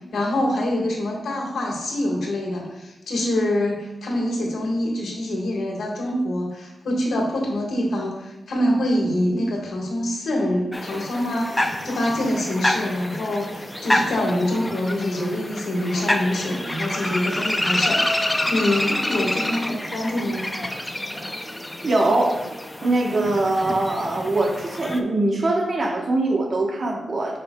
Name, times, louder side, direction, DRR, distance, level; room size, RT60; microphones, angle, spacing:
voice 1, 0.1-20.4, left 1 dB, 75° left, -1 dB, 1.5 m, -25 dB
sound 1, 10.7-25.0, left 1 dB, 10° left, 0.4 m, -27 dB
voice 2, 21.8-22.5 22.8-27.4, right 2 dB, 40° right, 0 dB, 1.1 m, -22 dB
9.2 x 5.0 x 2.3 m, 1.0 s
wide cardioid pair, 155°, 0 cm